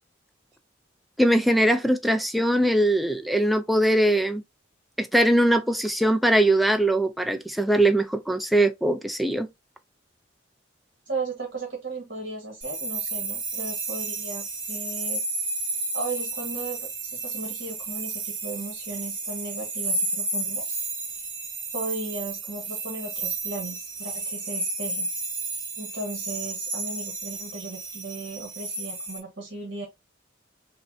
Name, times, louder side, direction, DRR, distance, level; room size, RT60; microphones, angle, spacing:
voice 1, 1.2-4.4 5.0-9.5, right 1 dB, ahead, 0.4 m, -21 dB
voice 2, 11.1-15.2 15.9-20.8 21.7-25.1 25.8-29.9, right 3 dB, 55° right, 1.3 m, -36 dB
sound 1, 12.6-29.2, right 3 dB, 40° right, 1.8 m, -32 dB
5.1 x 2.2 x 2.6 m
head